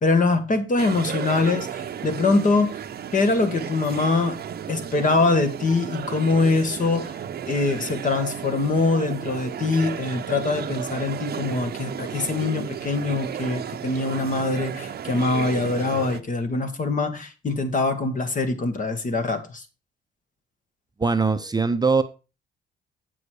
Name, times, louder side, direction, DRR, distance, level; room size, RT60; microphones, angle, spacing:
voice 1, 0.0-2.8 3.1-4.4 4.7-7.2 7.5-19.6, left 3 dB, 40° left, 1.7 m, -23 dB
sound 1, 0.8-16.2, right 8 dB, 50° right, 0.8 m, -33 dB
voice 2, 21.0-22.0, right 4 dB, 20° right, 0.7 m, -21 dB
7.8 x 6.7 x 4.8 m
cardioid pair, 90°, 20 cm